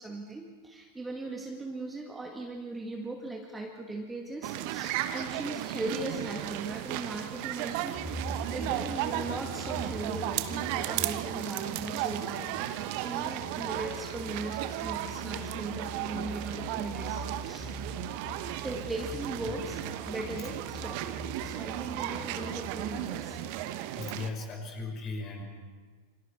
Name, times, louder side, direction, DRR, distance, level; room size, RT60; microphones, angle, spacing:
voice 1, 0.0-12.6 13.0-17.7 18.6-23.4 24.2-24.5, right 2 dB, 10° right, 1 dB, 2.1 m, -39 dB
sound 1, 4.4-24.3, right 13 dB, 45° right, 1.2 m, -35 dB
sound 2, 7.9-23.7, left 1 dB, 15° left, 1.8 m, -44 dB
voice 2, 23.7-25.4, left 3 dB, 30° left, 2 dB, 5.3 m, -37 dB
28.0 x 25.5 x 4.6 m, 1.5 s
figure-of-eight pair, 90°, 0 cm